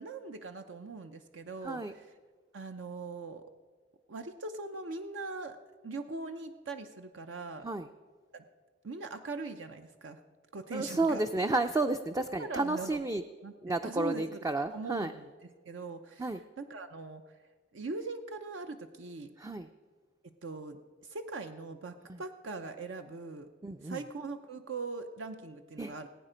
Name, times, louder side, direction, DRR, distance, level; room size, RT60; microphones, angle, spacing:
voice 1, 0.0-2.1 2.5-3.4 4.1-5.6 5.8-7.7 8.3-8.4 8.8-10.2 10.5-11.2 12.4-13.0 13.4-15.3 15.7-17.2 17.7-19.3 20.4-23.5 23.8-26.1, right 3 dB, 70° right, 7 dB, 0.6 m, -41 dB
voice 2, 10.7-13.2 13.6-15.1 16.2-16.4 19.4-19.7 22.1-22.2 23.6-24.0 25.8-25.9, right 2 dB, 15° right, 8 dB, 0.4 m, -31 dB
19.5 x 8.9 x 5.0 m, 1.5 s
head